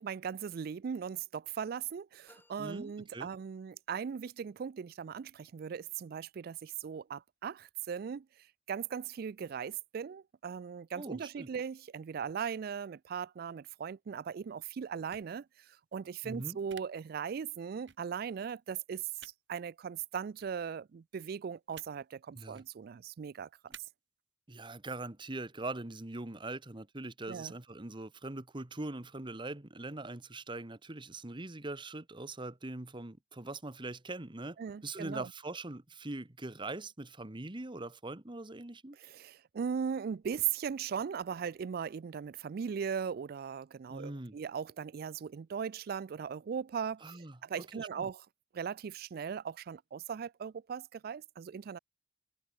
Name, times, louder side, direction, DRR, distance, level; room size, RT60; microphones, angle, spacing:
voice 1, 0.0-8.3 8.7-15.4 15.9-23.5 27.3-27.5 34.6-35.3 39.0-48.2 48.5-51.8, right 7 dB, 55° right, 0.4 m, -38 dB
sound 1, 2.3-3.9, left 1 dB, 10° left, 4.2 m, -66 dB
voice 2, 2.6-3.3 10.9-11.5 16.2-16.6 22.3-22.6 24.5-34.6 34.8-39.0 43.9-44.4 47.0-47.4 47.7-48.1, right 2 dB, 25° right, 1.3 m, -42 dB
sound 2, 15.1-15.3 16.7-16.8 17.9-18.0 19.2-19.3 20.4-20.5 21.7-21.9 22.4-22.7 23.7-23.8, right 8 dB, 75° right, 6.3 m, -52 dB
head